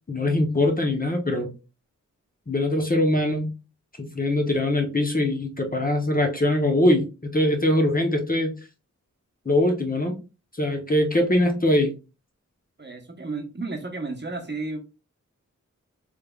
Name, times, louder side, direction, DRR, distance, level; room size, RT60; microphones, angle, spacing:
voice 1, 0.1-1.5 2.5-3.5 4.0-8.6 9.5-10.2 10.5-11.9, left 1 dB, 30° left, 0.8 m, -22 dB
voice 2, 12.8-14.8, right 3 dB, 35° right, 0.9 m, -32 dB
3.4 x 3.3 x 2.3 m
wide cardioid pair, 60°, 31 cm